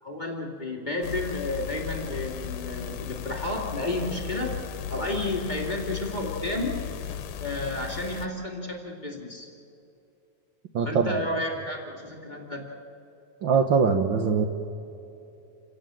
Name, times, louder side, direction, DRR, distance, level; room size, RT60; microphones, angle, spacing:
voice 1, 0.0-4.6 4.9-6.8 7.4-9.5 10.9-12.6, left 2 dB, 15° left, -1 dB, 2.2 m, -31 dB
sound 1, 1.0-8.3, left 10 dB, 85° left, 2.5 m, -36 dB
voice 2, 10.7-11.2 13.4-14.4, right 5 dB, 70° right, 5 dB, 1.1 m, -22 dB
28.5 x 17.0 x 7.6 m, 2.8 s
omnidirectional pair, 3.6 m